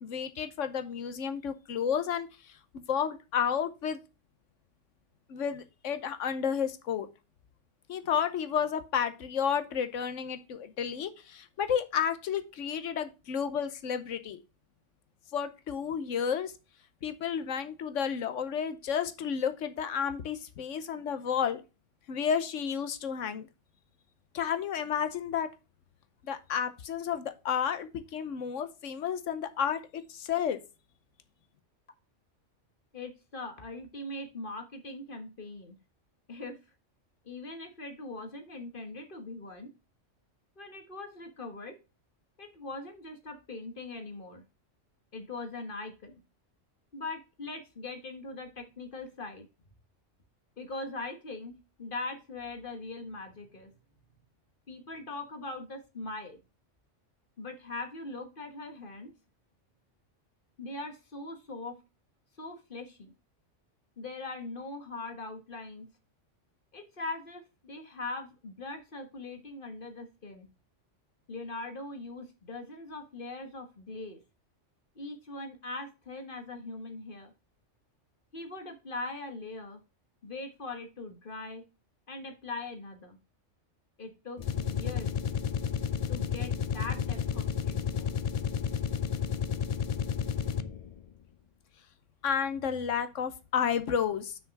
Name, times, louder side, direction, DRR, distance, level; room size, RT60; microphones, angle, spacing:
voice 1, 0.0-2.3 2.7-4.0 5.3-7.1 7.9-14.4 15.3-16.5 17.0-21.6 22.1-23.5 24.3-25.5 26.2-30.6 92.2-94.4, left 7 dB, 85° left, 11 dB, 1.2 m, -31 dB
voice 2, 32.9-35.8 36.3-36.6 37.2-39.7 40.6-41.8 42.4-44.4 45.1-46.2 46.9-49.5 50.6-53.7 54.7-56.4 57.4-59.1 60.6-61.8 62.4-63.1 64.0-65.9 66.7-70.5 71.3-74.2 74.9-77.3 78.3-79.8 80.2-81.6 82.1-83.2 84.0-85.1 86.1-88.2, left 2 dB, 45° left, 6 dB, 1.5 m, -41 dB
sound 1, 84.4-90.9, left 7 dB, 60° left, 0.4 m, -31 dB
6.2 x 5.1 x 5.8 m, 0.30 s
omnidirectional pair, 1.3 m